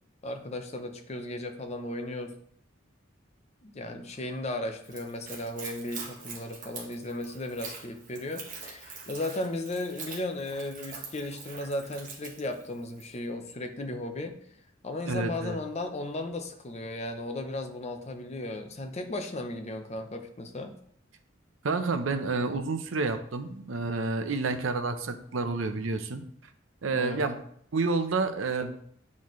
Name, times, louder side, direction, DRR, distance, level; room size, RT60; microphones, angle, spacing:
voice 1, 0.2-2.3 3.6-14.4 14.8-20.7 26.9-27.2, left 1 dB, 35° left, 6 dB, 0.7 m, -35 dB
Splash splatter / Trickle dribble, 4.8-13.2, right 5 dB, 45° right, 1.3 m, -44 dB
voice 2, 15.1-15.6 21.6-26.2 26.8-27.4 27.7-28.7, right 3 dB, 85° right, 9 dB, 0.6 m, -29 dB
8.5 x 4.2 x 3.1 m, 0.64 s
head